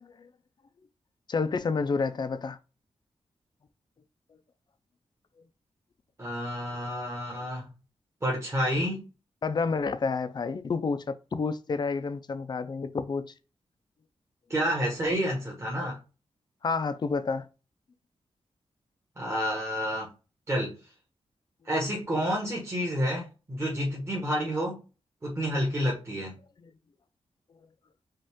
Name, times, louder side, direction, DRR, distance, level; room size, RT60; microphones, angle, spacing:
voice 1, 1.3-2.6 9.4-13.3 16.6-17.5, left 4 dB, 40° left, 0.5 m, -29 dB
voice 2, 6.2-7.7 8.2-9.1 14.5-16.0 19.2-20.1 20.5-20.8 21.6-24.8 25.2-26.4, equal, 25° right, 1.4 m, -29 dB
5.2 x 2.5 x 3.6 m
wide cardioid pair, 140°, 11 cm